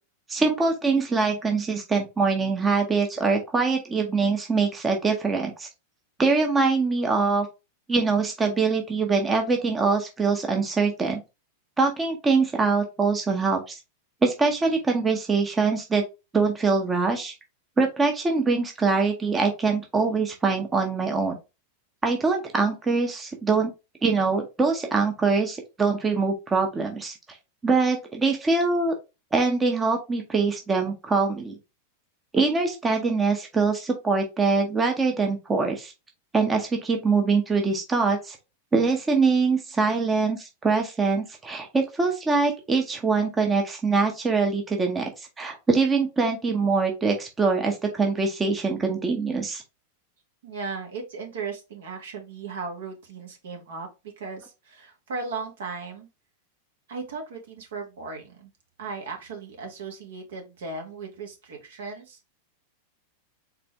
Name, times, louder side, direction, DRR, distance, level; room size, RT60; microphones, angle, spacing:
voice 1, 0.3-5.7 6.2-7.5 7.9-11.2 11.8-13.8 14.2-16.0 16.3-17.3 17.8-21.4 22.0-23.7 24.0-27.1 27.6-28.9 29.3-31.6 32.3-35.9 36.3-38.4 38.7-49.6, right 4 dB, 15° right, 3 dB, 0.9 m, -23 dB
voice 2, 50.4-56.1 56.9-58.5 58.8-62.2, right 4 dB, 60° right, 2 dB, 1.5 m, -36 dB
4.2 x 3.3 x 3.3 m, 0.26 s
figure-of-eight pair, 90°, 0 cm